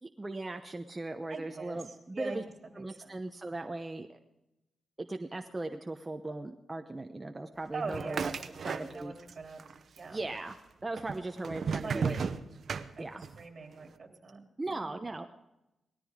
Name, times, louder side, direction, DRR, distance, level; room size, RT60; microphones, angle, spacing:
voice 1, 0.0-2.4 2.7-4.2 5.0-9.1 10.1-10.6 10.8-12.2 13.0-13.2 14.6-15.3, right 2 dB, 20° right, 5 dB, 0.9 m, -38 dB
voice 2, 1.3-1.8 2.1-2.4 2.6-3.2 7.7-9.6 10.0-10.2 11.8-12.3 13.0-13.1 13.4-14.4 14.7-14.9, right 4 dB, 45° right, 3 dB, 3.2 m, -42 dB
sound 1, 7.9-9.3 9.6-10.3 11.0-13.4, right 6 dB, 65° right, 0.8 m, -35 dB
19.0 x 13.5 x 3.7 m, 0.93 s
cardioid pair, 95°, 0 cm